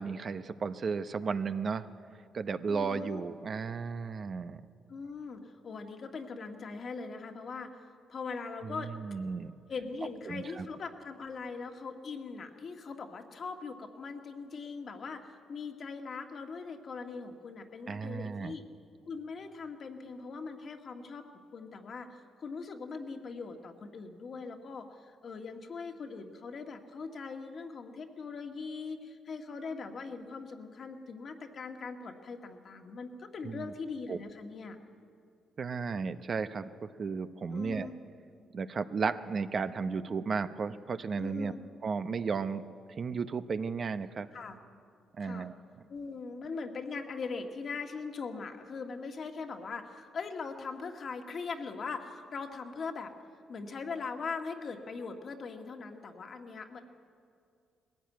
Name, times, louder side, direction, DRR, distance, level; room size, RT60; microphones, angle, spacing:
voice 1, 0.0-1.9 2.3-4.6 8.6-9.5 10.3-10.7 17.9-18.5 33.4-33.7 34.1-34.2 35.6-37.9 38.5-41.5 41.8-42.6 42.9-44.3 45.2-45.6, right 5 dB, 45° right, 11 dB, 0.7 m, -34 dB
voice 2, 2.7-3.2 4.9-7.8 8.1-8.9 9.7-18.6 19.1-21.3 21.5-34.8 37.5-38.0 41.2-41.6 44.3-44.6 45.2-45.5 45.9-53.1 53.5-56.8, left 4 dB, 50° left, 4 dB, 1.7 m, -41 dB
20.0 x 15.0 x 9.3 m, 2.4 s
cardioid pair, 85°, 0 cm